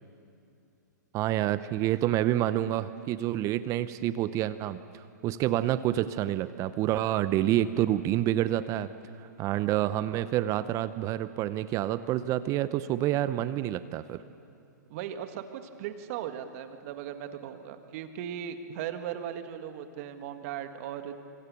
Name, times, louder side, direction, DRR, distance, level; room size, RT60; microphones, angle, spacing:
voice 1, 1.1-8.9 9.4-14.2, right 13 dB, 30° right, 14 dB, 0.7 m, -28 dB
voice 2, 14.9-21.1, right 9 dB, 50° right, 7 dB, 1.9 m, -38 dB
26.5 x 25.5 x 7.0 m, 2.6 s
hypercardioid pair, 115°, 10 cm